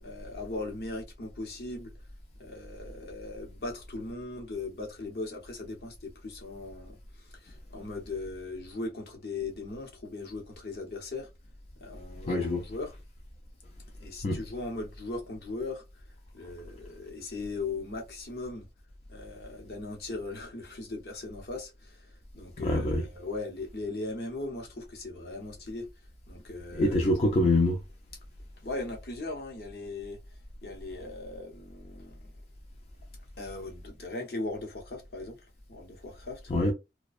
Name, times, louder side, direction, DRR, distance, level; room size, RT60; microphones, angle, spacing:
voice 1, 0.0-1.9 2.4-11.3 11.8-12.9 14.0-15.8 16.3-18.7 19.1-25.9 26.3-27.0 28.6-30.2 30.6-32.2 33.4-35.4 35.7-36.4, left 2 dB, 65° left, 0.9 m, -38 dB
voice 2, 12.3-12.6 14.2-14.4 22.6-23.1 26.7-27.8 36.5-36.7, left 1 dB, 35° left, 0.4 m, -25 dB
2.4 x 2.2 x 2.4 m
head